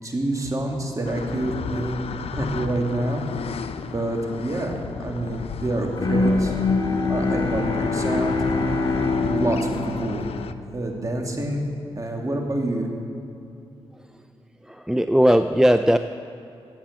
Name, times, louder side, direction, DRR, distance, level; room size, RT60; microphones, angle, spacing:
voice 1, 0.0-3.6 3.8-6.6 7.1-8.4 8.9-10.3 10.7-12.9, right 1 dB, 30° right, 1 dB, 2.7 m, -27 dB
sound 1, 1.0-10.5, left 6 dB, 65° left, 0.6 m, -32 dB
Bowed string instrument, 6.0-11.0, left 2 dB, 40° left, 2.5 m, -24 dB
voice 2, 14.6-16.0, equal, 5° right, 9 dB, 0.5 m, -18 dB
13.5 x 9.0 x 7.5 m, 2.8 s
supercardioid pair, 45°, 11 cm